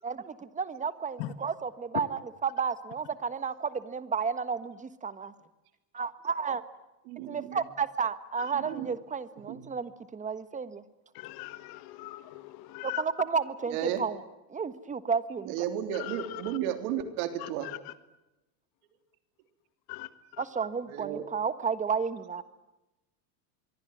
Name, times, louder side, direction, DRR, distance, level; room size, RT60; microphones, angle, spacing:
voice 1, 0.0-5.3 5.9-6.6 7.3-10.8 12.8-14.2 14.5-15.5 20.4-22.4, right 6 dB, 15° right, 13 dB, 1.4 m, -32 dB
voice 2, 7.1-7.6 8.5-8.9 9.5-9.7 13.7-14.0 15.4-17.7 20.9-21.3, right 10 dB, 70° right, 8 dB, 3.4 m, -33 dB
voice 3, 11.1-13.0 16.1-16.2 17.4-17.5 19.9-20.1, left 18 dB, 50° left, 13 dB, 1.8 m, -40 dB
25.5 x 23.5 x 9.3 m, 0.99 s
supercardioid pair, 145°, 46 cm